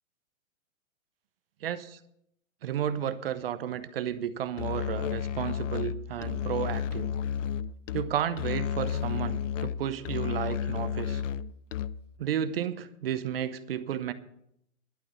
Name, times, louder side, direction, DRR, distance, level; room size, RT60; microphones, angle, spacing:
voice 1, 1.6-2.0 2.6-7.1 7.9-11.2 12.2-14.1, right 9 dB, 45° right, 13 dB, 0.8 m, -32 dB
Musical instrument, 4.6-12.2, left 8 dB, 60° left, 0.6 m, -32 dB
11.5 x 8.2 x 7.1 m, 0.75 s
hypercardioid pair, 170°, 42 cm